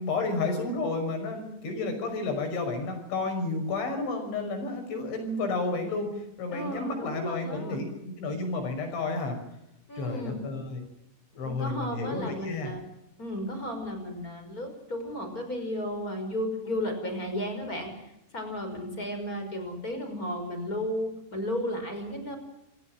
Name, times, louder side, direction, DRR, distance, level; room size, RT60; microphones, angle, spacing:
voice 1, 0.0-9.4 10.0-10.8 11.4-12.7, left 3 dB, 85° left, 5 dB, 8.2 m, -31 dB
voice 2, 6.5-7.8 9.9-10.4 11.3-12.8 13.2-22.4, equal, 20° left, 6 dB, 5.7 m, -34 dB
28.0 x 17.5 x 7.6 m, 0.84 s
omnidirectional pair, 5.2 m